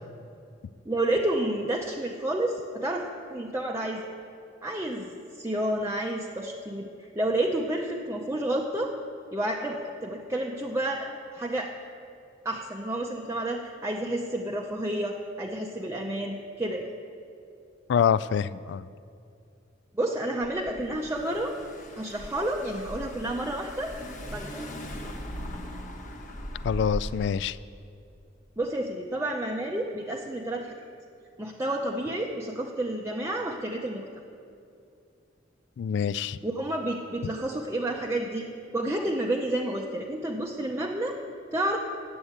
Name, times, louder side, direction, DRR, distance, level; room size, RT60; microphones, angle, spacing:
voice 1, 0.9-4.0 4.6-9.0 9.3-11.7 12.4-16.9 19.9-21.6 22.0-24.0 24.3-25.2 28.6-30.7 31.4-34.1 36.4-38.5 38.7-41.2 41.5-41.8, right 1 dB, 15° right, -1 dB, 0.6 m, -30 dB
voice 2, 17.9-18.8 26.6-27.6 35.8-36.4, left 7 dB, 65° left, 18 dB, 0.3 m, -25 dB
Car / Engine, 20.4-27.4, equal, 45° left, 1.1 m, -39 dB
9.7 x 7.8 x 8.6 m, 2.5 s
head